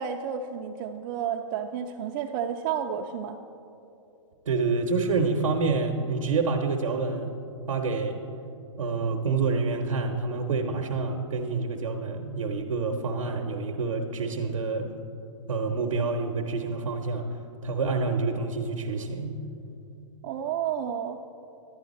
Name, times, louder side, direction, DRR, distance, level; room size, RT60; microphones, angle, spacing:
voice 1, 0.0-3.4 20.2-21.2, right 8 dB, 40° right, 3 dB, 0.4 m, -31 dB
voice 2, 4.5-7.3 7.7-8.2 8.8-14.9 15.5-17.2 17.6-19.4, right 4 dB, 85° right, 3 dB, 0.8 m, -27 dB
11.0 x 9.2 x 4.1 m, 2.8 s
hypercardioid pair, 135°, 16 cm